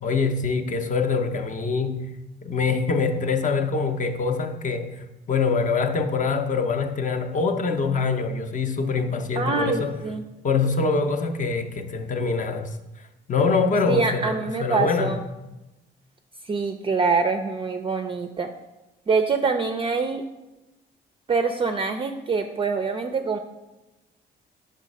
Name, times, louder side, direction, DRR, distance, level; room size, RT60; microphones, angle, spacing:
voice 1, 0.0-2.1 2.4-10.0 10.4-12.7 13.3-15.2, left 4 dB, 40° left, 0.6 m, -24 dB
voice 2, 9.4-10.2 13.9-15.2 16.4-18.5 19.1-20.2 21.3-23.4, right 4 dB, 25° right, 0.4 m, -25 dB
5.5 x 3.3 x 5.2 m
cardioid pair, 90°, 20 cm